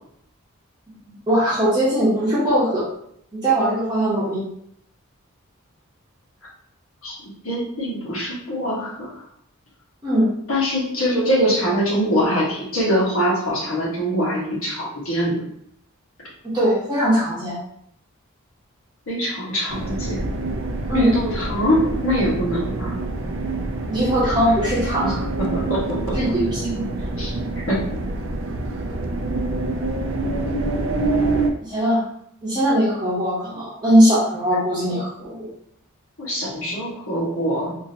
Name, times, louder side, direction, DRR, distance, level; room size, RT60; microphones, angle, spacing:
voice 1, 1.3-2.8 3.3-4.4 10.0-10.3 16.5-17.5 20.9-21.1 23.9-25.2 26.1-26.9 31.6-32.0 32.4-35.5, right 1 dB, 20° right, -8 dB, 1.0 m, -20 dB
voice 2, 7.4-9.1 10.5-15.4 19.1-20.2 20.9-23.0 25.4-26.2 27.2-27.3 27.7-27.9 36.2-37.7, equal, 70° left, -5 dB, 1.4 m, -23 dB
sound 1, 19.7-31.5, right 2 dB, 60° right, 0.4 m, -26 dB
3.8 x 2.7 x 2.8 m, 0.70 s
head